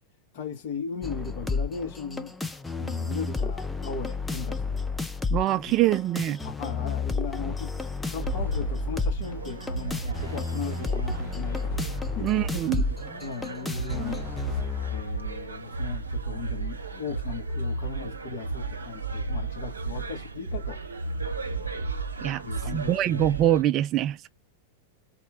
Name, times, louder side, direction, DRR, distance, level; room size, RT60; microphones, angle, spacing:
voice 1, 0.3-2.4 2.8-4.8 5.7-5.8 6.4-11.8 12.2-20.8 22.4-22.9, left 5 dB, 50° left, 2.0 m, -37 dB
sound 1, 1.0-15.0, left 4 dB, 5° left, 0.7 m, -32 dB
voice 2, 5.3-6.4 12.2-12.8 22.2-22.4 22.7-24.3, right 13 dB, 35° right, 0.4 m, -24 dB
sound 2, 8.2-23.6, right 3 dB, 75° right, 0.8 m, -33 dB
4.2 x 2.8 x 3.7 m
figure-of-eight pair, 90°, 0 cm